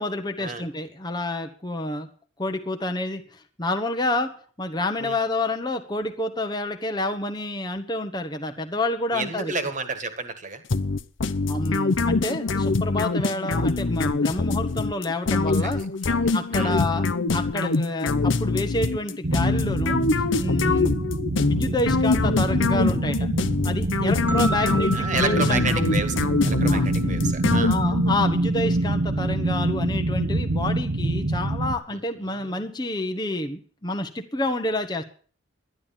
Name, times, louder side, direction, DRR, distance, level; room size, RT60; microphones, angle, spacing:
voice 1, 0.0-2.1 2.4-9.5 11.5-15.8 16.3-20.0 20.4-21.0 21.4-23.3 23.6-25.6 26.6-26.9 27.6-35.0, left 2 dB, 20° left, 5 dB, 1.1 m, -28 dB
voice 2, 9.1-10.6 13.2-13.3 15.6-15.7 16.0-16.8 20.6-20.8 24.6-27.8 31.9-32.6, right 4 dB, 35° right, 9 dB, 1.8 m, -31 dB
sound 1, 10.7-28.2, left 3 dB, 70° left, 0.7 m, -24 dB
sound 2, 19.2-31.8, right 2 dB, 65° right, 1.1 m, -26 dB
sound 3, 24.3-27.4, right 3 dB, 10° right, 1.0 m, -34 dB
12.0 x 10.5 x 7.2 m, 0.43 s
head